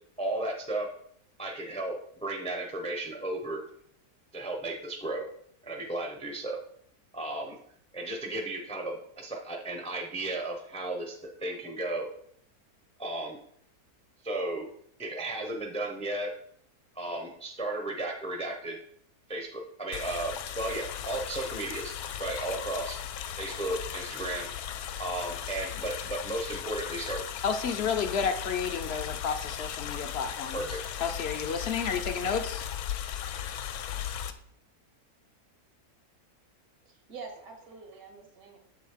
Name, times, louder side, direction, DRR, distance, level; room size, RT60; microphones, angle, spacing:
voice 1, 0.2-0.9 1.4-1.9 2.2-3.6 4.3-5.3 5.6-6.6 7.1-7.6 7.9-12.1 13.0-13.4 14.2-14.7 15.0-16.3 17.0-18.8 19.3-23.0 23.4-24.5 25.0-27.2 30.5-30.8, right 2 dB, 5° left, 2 dB, 0.5 m, -34 dB
sound 1, 19.9-34.3, left 9 dB, 75° left, 1.0 m, -37 dB
voice 2, 27.4-30.7 31.0-32.6, left 6 dB, 60° left, 6 dB, 0.7 m, -31 dB
voice 3, 36.9-38.6, right 4 dB, 75° right, 2 dB, 1.9 m, -46 dB
7.1 x 3.8 x 4.9 m, 0.67 s
omnidirectional pair, 1.6 m